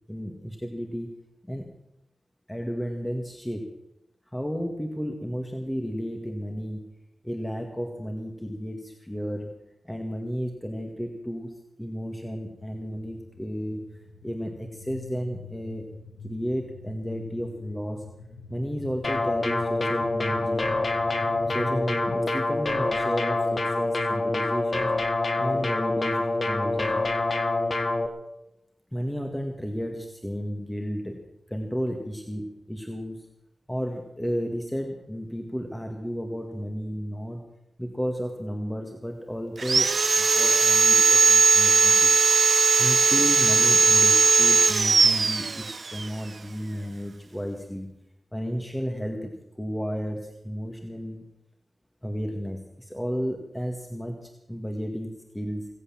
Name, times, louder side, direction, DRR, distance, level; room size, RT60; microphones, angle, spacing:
voice 1, 0.1-1.1 1.4-1.7 2.5-3.7 4.3-6.8 7.2-9.5 9.8-13.8 14.2-15.9 16.2-18.0 18.5-20.7 21.5-24.9 25.4-27.1 28.9-31.2 31.5-33.3 33.7-37.4 37.8-42.1 42.8-47.9 48.3-51.2 52.0-55.7, equal, 10° left, 3 dB, 2.0 m, -33 dB
sound 1, 12.1-22.2, left 3 dB, 85° left, 1.4 m, -44 dB
sound 2, 19.0-28.1, left 2 dB, 50° left, 1.7 m, -26 dB
Sawing, 39.6-46.1, right 4 dB, 65° right, 0.5 m, -19 dB
21.5 x 8.3 x 7.4 m, 0.88 s
cardioid pair, 65°, 0 cm